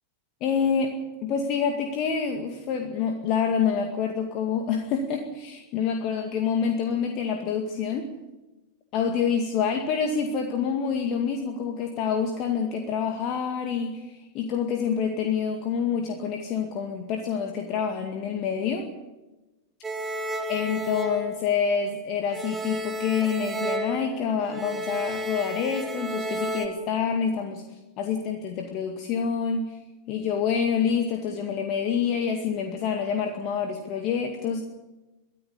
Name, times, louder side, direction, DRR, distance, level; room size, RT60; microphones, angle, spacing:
voice 1, 0.4-1.0 1.2-8.1 8.9-18.9 20.5-27.6 28.0-29.8 30.1-34.6, left 6 dB, 40° left, 3 dB, 2.1 m, -27 dB
sound 1, 19.8-22.0 22.3-26.7, right 1 dB, 15° right, 2.4 m, -33 dB
23.5 x 13.5 x 8.4 m, 1.1 s
figure-of-eight pair, 90°, 0 cm